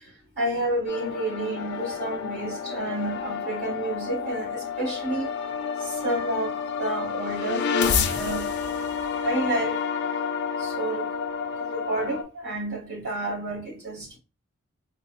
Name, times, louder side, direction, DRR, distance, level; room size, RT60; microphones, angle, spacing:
voice 1, 0.4-5.3 5.8-8.6 9.2-9.8 10.6-11.1 11.6-14.2, right 1 dB, 45° right, 1.8 m, -30 dB
sound 1, 0.9-12.2, left 6 dB, 50° left, 0.4 m, -29 dB
4.2 x 2.1 x 2.2 m
head